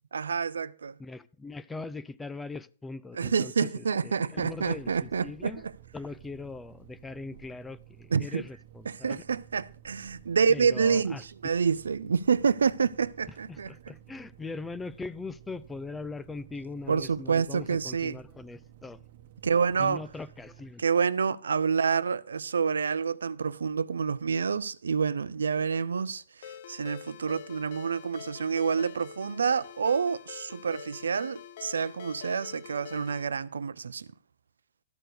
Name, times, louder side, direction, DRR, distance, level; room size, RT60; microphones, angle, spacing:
voice 1, 0.1-1.0 3.1-5.5 8.1-8.4 8.9-13.7 16.9-18.2 19.4-20.0 20.8-34.1, right 6 dB, 85° right, 0.5 m, -28 dB
voice 2, 1.0-5.6 5.9-9.2 10.5-11.2 13.5-19.0 19.8-20.8, left 3 dB, 10° left, 0.5 m, -40 dB
sound 1, 4.5-20.7, right 12 dB, 55° right, 1.1 m, -54 dB
Ringtone, 26.4-33.3, left 9 dB, 60° left, 0.7 m, -45 dB
13.0 x 4.5 x 6.5 m
hypercardioid pair, 120°, 0 cm